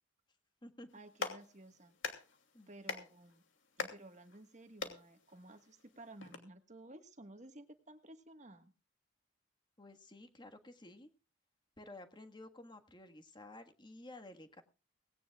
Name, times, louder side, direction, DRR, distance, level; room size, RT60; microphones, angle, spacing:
Clapping, 0.9-6.4, left 4 dB, 70° left, 2.7 m, -46 dB
voice 1, 0.9-2.0 2.7-3.4 3.8-8.7, right 1 dB, 35° right, 8 dB, 1.6 m, -55 dB
voice 2, 9.8-11.1 11.8-14.6, left 1 dB, 20° left, 6 dB, 1.6 m, -53 dB
19.0 x 17.5 x 2.4 m, 0.33 s
head